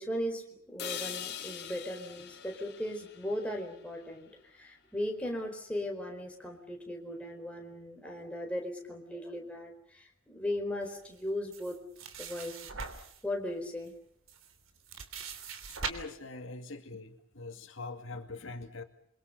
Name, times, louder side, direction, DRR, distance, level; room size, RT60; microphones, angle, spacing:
voice 1, 0.0-11.8 12.2-12.8 13.2-13.9, left 1 dB, 5° left, 1 dB, 4.4 m, -37 dB
sound 1, 0.8-4.8, left 9 dB, 50° left, 2.8 m, -43 dB
sound 2, 11.5-13.2 13.9-14.0 14.3-15.9, right 5 dB, 70° right, 3.3 m, -41 dB
voice 2, 15.8-18.8, left 3 dB, 65° left, 6 dB, 2.3 m, -43 dB
28.5 x 24.0 x 6.8 m, 0.67 s
head